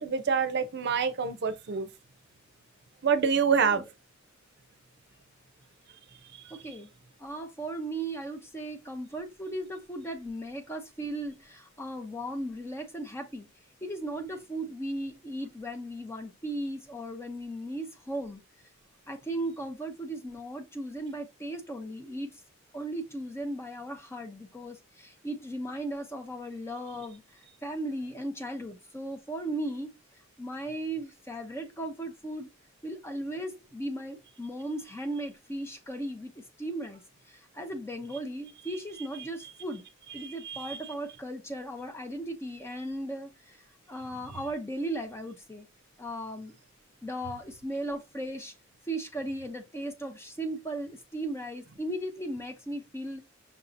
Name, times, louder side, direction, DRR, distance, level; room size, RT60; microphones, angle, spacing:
voice 1, 0.0-1.9 3.0-3.8 40.2-40.8, right 6 dB, 55° right, 0.6 m, -27 dB
voice 2, 6.5-6.9 7.2-13.5 13.8-18.4 19.1-22.4 22.7-29.9 30.4-32.5 32.8-37.0 37.3-39.8 40.1-43.6 43.9-45.7 46.0-46.5 47.0-48.5 48.9-53.2, right 1 dB, 15° left, 0.7 m, -37 dB
5.7 x 2.8 x 2.5 m
head